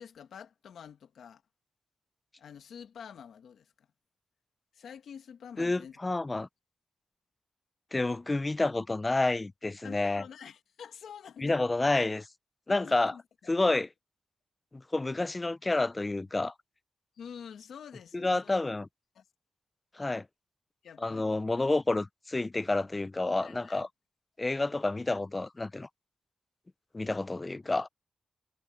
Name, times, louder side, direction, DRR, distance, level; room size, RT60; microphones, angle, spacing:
voice 1, 0.0-1.4 2.4-3.9 4.7-5.9 9.8-11.6 12.7-13.5 17.1-18.6 19.1-19.2 20.8-21.4 23.4-23.8, left 7 dB, 85° left, 1.6 m, -47 dB
voice 2, 5.6-6.5 7.9-10.2 11.4-12.3 12.7-13.1 13.5-13.9 14.7-16.5 18.1-18.9 19.9-20.3 21.0-23.9 24.4-25.9 26.9-27.9, left 2 dB, 15° left, 0.4 m, -29 dB
wide cardioid pair, 165°, 0 cm